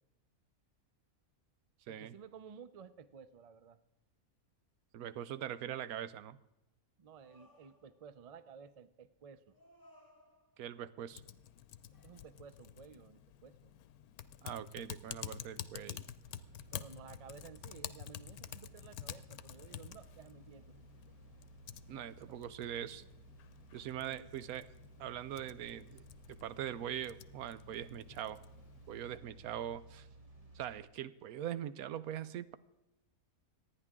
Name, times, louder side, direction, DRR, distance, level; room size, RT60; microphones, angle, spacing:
voice 1, 1.9-3.8 7.0-9.6 12.0-13.7 16.7-20.8 22.3-22.4 24.0-24.5 29.1-29.3, right 6 dB, 70° right, 14 dB, 0.3 m, -54 dB
voice 2, 4.9-6.4 10.6-11.2 14.4-16.1 21.9-23.0 23.7-24.7 25.0-26.0 26.3-28.4 28.9-30.1 30.5-32.6, right 10 dB, 85° right, 14 dB, 1.1 m, -42 dB
sound 1, 7.2-8.3 9.5-11.0 11.9-12.9 13.5-13.7 19.6-20.7, equal, 15° left, 1.6 m, -67 dB
Typing, 11.1-29.1, left 11 dB, 90° left, 1.1 m, -50 dB
sound 2, 16.2-30.8, right 2 dB, 25° right, 1.6 m, -58 dB
25.5 x 9.8 x 3.6 m, 0.94 s
omnidirectional pair, 1.5 m